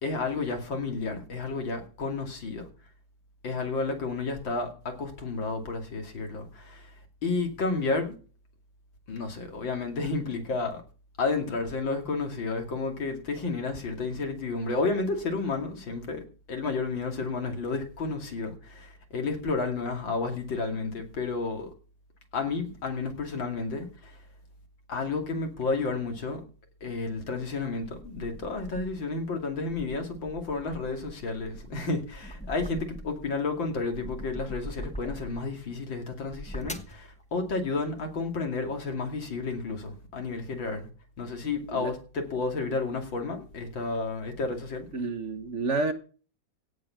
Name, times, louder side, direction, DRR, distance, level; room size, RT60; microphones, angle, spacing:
voice 1, 0.0-2.7 3.4-6.9 7.2-8.2 9.1-10.8 11.2-21.7 22.3-24.2 24.9-26.4 26.8-40.9 41.2-44.9, left 3 dB, 75° left, 3.2 m, -31 dB
sound 1, 27.2-29.1 29.6-33.3 33.7-35.6 36.2-37.0, equal, 5° left, 0.5 m, -42 dB
voice 2, 44.9-45.9, right 3 dB, 45° right, 1.3 m, -29 dB
17.0 x 7.2 x 5.7 m
omnidirectional pair, 2.1 m